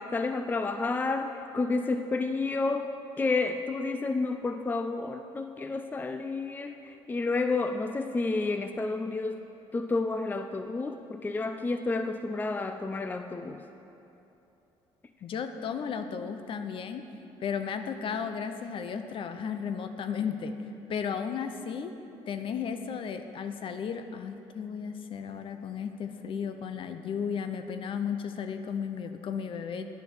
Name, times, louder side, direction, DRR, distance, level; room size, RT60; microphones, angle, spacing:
voice 1, 0.0-2.9 3.2-9.4 9.7-13.6, left 3 dB, 15° left, 7 dB, 0.4 m, -30 dB
voice 2, 15.2-17.0 17.4-20.5 20.9-21.9 22.3-29.9, left 7 dB, 50° left, 8 dB, 0.7 m, -34 dB
10.0 x 6.5 x 6.3 m, 2.9 s
cardioid pair, 105°, 11 cm